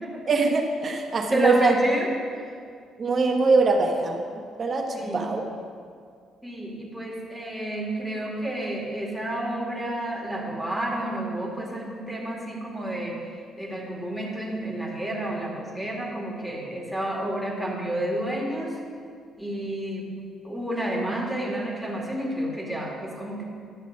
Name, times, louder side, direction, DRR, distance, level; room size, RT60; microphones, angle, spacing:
voice 1, 0.3-1.7 3.0-5.4, right 3 dB, 45° right, 3 dB, 1.2 m, -23 dB
voice 2, 1.3-2.1 4.9-5.5 6.4-18.8 19.4-20.1 20.4-23.4, right 1 dB, 5° left, -2 dB, 2.3 m, -30 dB
11.0 x 6.3 x 5.3 m, 2.2 s
cardioid pair, 85°, 0 cm